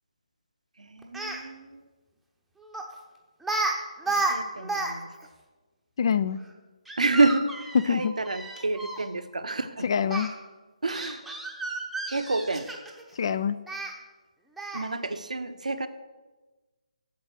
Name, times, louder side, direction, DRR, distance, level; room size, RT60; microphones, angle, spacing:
voice 1, 0.8-1.8 4.1-5.0 7.0-9.9 10.8-11.2 12.1-12.7 14.7-15.9, right 3 dB, 70° right, 10 dB, 0.9 m, -28 dB
Speech, 1.0-1.4 2.7-2.9 3.4-3.7 4.0-4.9 5.2-5.3 6.9-9.0 10.1-10.3 10.9-13.0 13.7-13.9 14.6-14.9, right 2 dB, ahead, 0.9 m, -31 dB
voice 2, 6.0-6.4 7.7-8.1 9.8-10.3 13.2-13.6, left 7 dB, 40° left, 15 dB, 0.4 m, -24 dB
8.5 x 7.2 x 7.8 m, 1.2 s
figure-of-eight pair, 145°, 4 cm